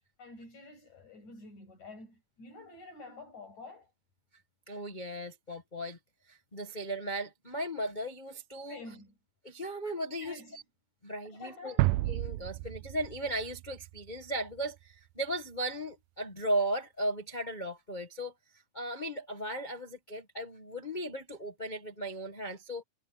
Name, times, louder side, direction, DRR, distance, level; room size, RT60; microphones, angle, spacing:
voice 1, 0.2-3.9 8.7-9.2 10.2-10.6 11.2-12.0, left 2 dB, 60° left, 9.4 m, -48 dB
voice 2, 4.7-6.0 6.3-8.8 9.4-10.6 11.0-11.7 12.1-18.3 18.7-22.8, right 1 dB, 85° left, 0.4 m, -36 dB
sound 1, 11.8-14.6, right 19 dB, 80° right, 2.0 m, -31 dB
omnidirectional pair, 3.8 m